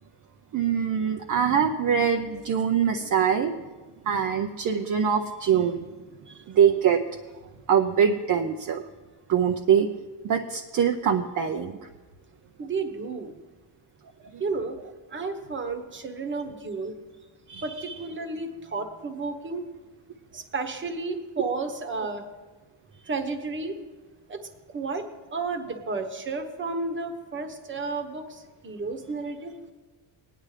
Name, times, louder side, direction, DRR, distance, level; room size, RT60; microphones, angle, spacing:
voice 1, 0.5-3.5 4.1-5.8 6.5-7.0 7.7-8.9 9.3-9.9 10.2-11.8 17.5-17.9, right 7 dB, 45° right, 3 dB, 0.7 m, -23 dB
voice 2, 12.6-13.3 14.4-14.8 15.1-16.9 17.6-19.6 20.3-22.3 23.1-23.7 24.3-24.4 24.7-29.5, right 3 dB, 25° right, 6 dB, 1.1 m, -32 dB
19.5 x 10.0 x 3.3 m, 1.3 s
cardioid pair, 145°, 42 cm